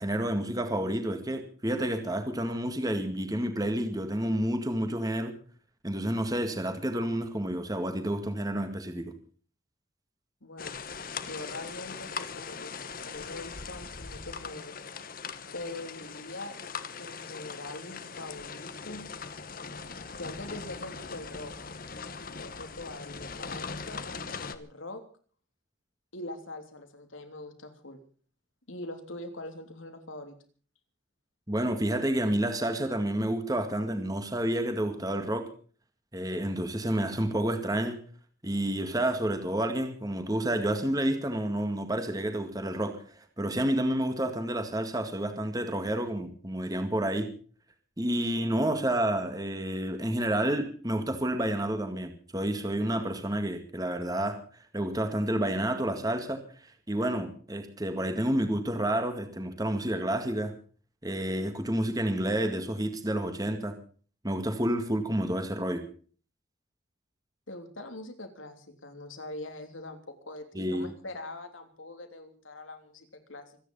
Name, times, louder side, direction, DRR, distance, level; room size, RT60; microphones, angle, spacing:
voice 1, 0.0-5.3 5.8-9.1 31.5-35.5 36.1-38.0 38.4-47.3 48.0-54.4 54.7-60.5 61.0-63.7 64.2-65.8 70.5-70.9, right 1 dB, 20° right, 7 dB, 2.0 m, -29 dB
voice 2, 10.4-10.7 11.2-12.8 13.0-14.8 15.5-16.5 17.0-19.1 20.1-21.5 22.2-25.0 26.1-28.0 28.7-30.3 67.5-73.6, left 2 dB, 85° left, 6 dB, 3.3 m, -43 dB
sound 1, 10.6-24.6, left 5 dB, 45° left, 1.2 m, -40 dB
25.5 x 10.0 x 5.5 m, 0.43 s
head